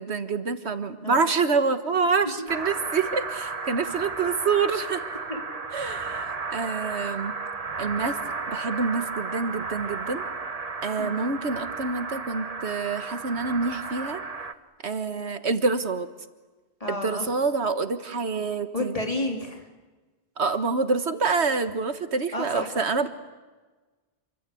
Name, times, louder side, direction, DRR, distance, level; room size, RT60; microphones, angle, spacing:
voice 1, 0.0-5.0 5.7-7.3 7.8-8.2 8.5-10.3 10.8-14.2 14.8-16.1 16.9-18.9 20.4-23.1, right 4 dB, 80° right, 9 dB, 1.7 m, -27 dB
sound 1, 2.5-14.5, right 4 dB, 35° right, 1.2 m, -34 dB
voice 2, 16.8-17.2 18.7-19.7 22.3-23.1, left 1 dB, 30° left, 2 dB, 3.4 m, -31 dB
28.0 x 24.5 x 8.5 m, 1.3 s
omnidirectional pair, 1.1 m